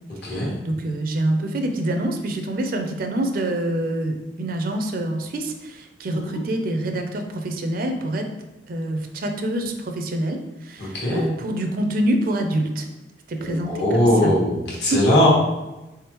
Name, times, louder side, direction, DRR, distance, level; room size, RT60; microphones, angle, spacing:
voice 1, 0.4-8.3 8.7-12.9 13.3-14.3 14.9-15.0, right 1 dB, 50° right, 5 dB, 0.4 m, -26 dB
voice 2, 10.8-11.2 13.5-15.3, left 1 dB, 65° left, -5 dB, 1.3 m, -20 dB
3.6 x 3.5 x 2.9 m, 1.0 s
head